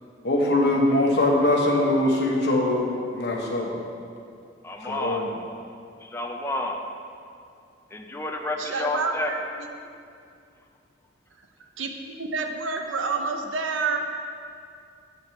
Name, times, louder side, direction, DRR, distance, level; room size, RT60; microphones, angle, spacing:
voice 1, 0.2-3.8 4.8-5.3, left 1 dB, 55° left, -1 dB, 1.0 m, -22 dB
voice 2, 4.6-5.2 6.1-6.8 7.9-9.3, left 1 dB, 10° left, 2 dB, 0.4 m, -30 dB
voice 3, 8.6-9.7 11.8-14.0, right 4 dB, 75° right, 4 dB, 0.6 m, -29 dB
8.6 x 4.1 x 4.5 m, 2.4 s
head